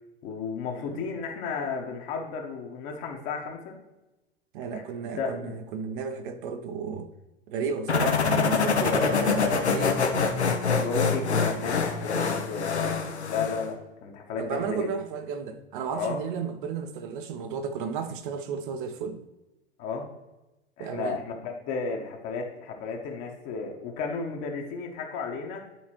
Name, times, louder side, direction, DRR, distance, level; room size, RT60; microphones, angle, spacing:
voice 1, 0.2-3.8 4.7-4.8 5.2-5.5 8.9-9.4 10.6-12.2 12.5-15.0 15.9-16.2 19.8-20.1 20.8-25.7, left 5 dB, 45° left, 1 dB, 1.1 m, -33 dB
voice 2, 4.5-7.1 7.5-10.0 14.4-19.2 20.8-21.2, right 6 dB, 50° right, 8 dB, 0.9 m, -33 dB
sound 1, 7.9-13.7, left 5 dB, 85° left, 0.9 m, -25 dB
10.0 x 4.2 x 2.9 m, 1.0 s
figure-of-eight pair, 90°, 32 cm